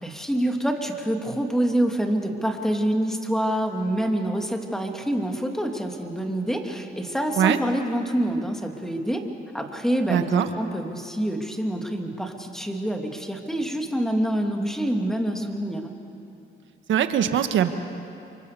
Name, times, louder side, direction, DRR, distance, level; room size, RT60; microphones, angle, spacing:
voice 1, 0.0-9.2 9.5-15.9, right 1 dB, ahead, 3 dB, 2.8 m, -26 dB
voice 2, 10.1-10.5 16.9-17.8, right 9 dB, 75° right, 8 dB, 1.5 m, -21 dB
28.5 x 24.0 x 6.9 m, 2.7 s
cardioid pair, 90°, 20 cm